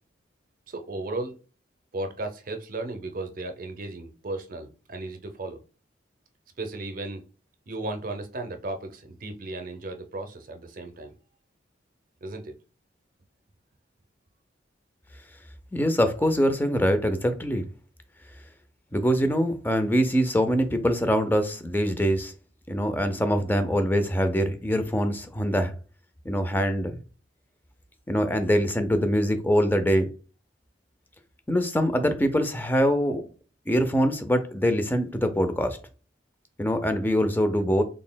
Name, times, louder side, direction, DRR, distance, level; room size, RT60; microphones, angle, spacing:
voice 1, 0.7-1.3 1.9-5.6 6.6-7.2 7.7-11.1 12.2-12.5, right 2 dB, 50° right, 0.6 m, -35 dB
voice 2, 15.7-17.6 18.9-22.3 22.7-25.7 26.3-27.0 28.1-30.1 31.5-33.2 33.7-35.8 36.6-37.8, equal, 10° left, 0.4 m, -24 dB
4.0 x 3.5 x 2.2 m
head